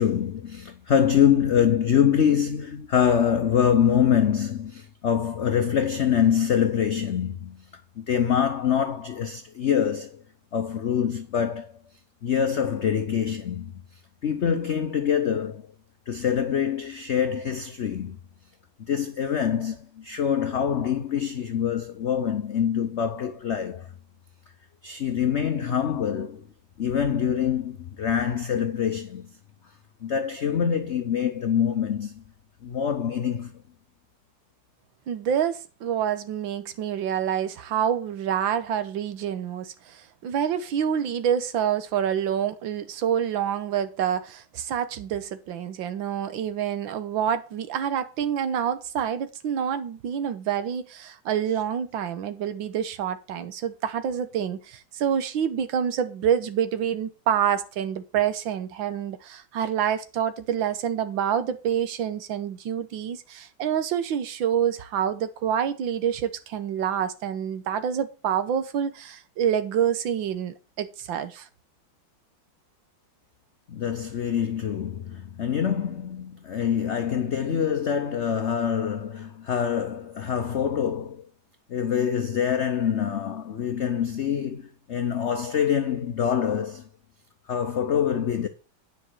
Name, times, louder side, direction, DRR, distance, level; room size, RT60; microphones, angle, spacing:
voice 1, 0.0-7.7 8.0-10.2 10.5-11.7 12.2-13.8 14.2-15.7 16.1-18.2 18.8-23.9 24.8-26.4 26.8-29.3 30.0-32.2 32.6-33.5 73.7-81.3 81.7-86.9 87.5-88.5, left 8 dB, 70° left, 0.6 m, -25 dB
voice 2, 35.1-71.5, right 9 dB, 75° right, 1.7 m, -27 dB
9.8 x 5.3 x 6.4 m
omnidirectional pair, 2.2 m